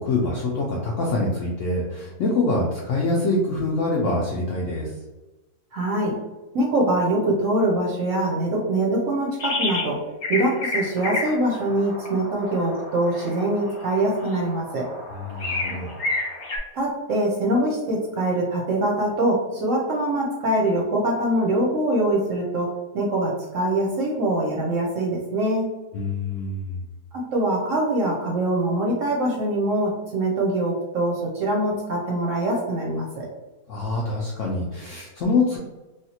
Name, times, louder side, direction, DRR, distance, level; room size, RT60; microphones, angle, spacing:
voice 1, 0.0-5.0 15.1-15.9 25.9-26.8 33.7-35.6, left 2 dB, 75° left, -2 dB, 0.7 m, -25 dB
voice 2, 5.7-6.2 6.5-10.0 10.3-14.9 16.7-25.7 27.1-33.3, right 1 dB, 60° right, -2 dB, 0.8 m, -23 dB
sound 1, 9.4-9.9 10.2-16.6, left 2 dB, 60° left, 1.0 m, -31 dB
3.3 x 2.4 x 2.8 m, 1.1 s
omnidirectional pair, 1.8 m